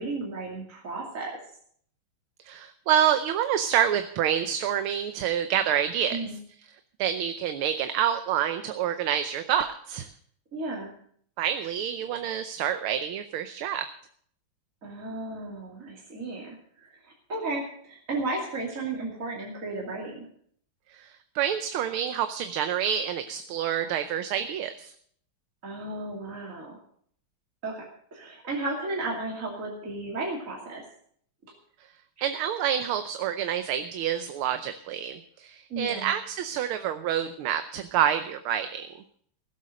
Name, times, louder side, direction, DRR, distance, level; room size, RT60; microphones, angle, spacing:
voice 1, 0.0-1.4 6.1-6.3 10.5-10.9 14.8-20.3 25.6-26.8 27.6-27.9 28.1-30.8 35.7-36.1, right 2 dB, 40° right, -2 dB, 2.9 m, -34 dB
voice 2, 2.4-6.2 7.0-10.1 11.4-13.9 20.9-24.9 32.2-38.9, right 9 dB, 80° right, 9 dB, 1.6 m, -27 dB
16.0 x 8.1 x 6.4 m, 0.62 s
omnidirectional pair, 2.3 m